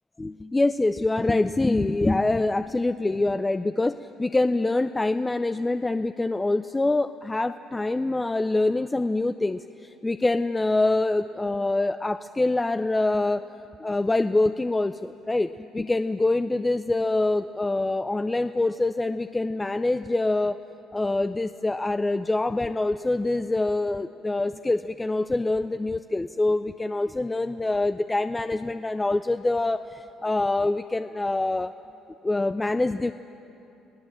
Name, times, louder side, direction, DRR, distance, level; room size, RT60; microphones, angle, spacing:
voice 1, 0.2-13.4 13.8-20.6 20.9-31.7 32.2-33.1, left 2 dB, 15° left, 11 dB, 0.5 m, -25 dB
27.0 x 17.5 x 7.4 m, 3.0 s
supercardioid pair, 85°, 0 cm